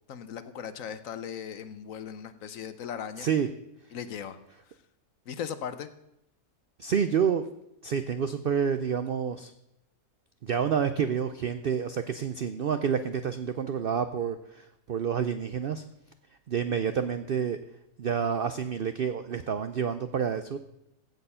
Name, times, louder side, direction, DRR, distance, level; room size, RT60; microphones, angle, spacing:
voice 1, 0.1-3.3 3.9-4.4 5.3-5.9, left 8 dB, 65° left, 12 dB, 1.1 m, -38 dB
voice 2, 3.2-3.5 6.8-7.5 7.8-9.5 10.4-15.8 16.5-17.6 18.0-20.6, right 7 dB, 65° right, 10 dB, 0.5 m, -28 dB
16.0 x 6.8 x 5.6 m, 0.85 s
omnidirectional pair, 1.6 m